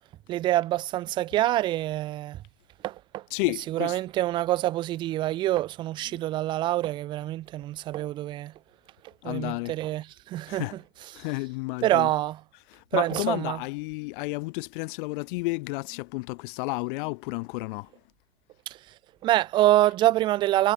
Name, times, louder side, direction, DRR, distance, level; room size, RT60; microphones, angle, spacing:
voice 1, 0.3-2.4 2.8-8.5 9.2-11.2 11.8-12.4 12.9-13.6 18.7-18.8 19.2-20.7, right 15 dB, 15° right, 0.4 m, -26 dB
voice 2, 3.3-4.0 6.1-6.2 9.2-9.8 10.5-10.8 11.1-12.1 12.7-17.9, left 25 dB, 45° left, 2.5 m, -32 dB
hypercardioid pair, 120°, 36 cm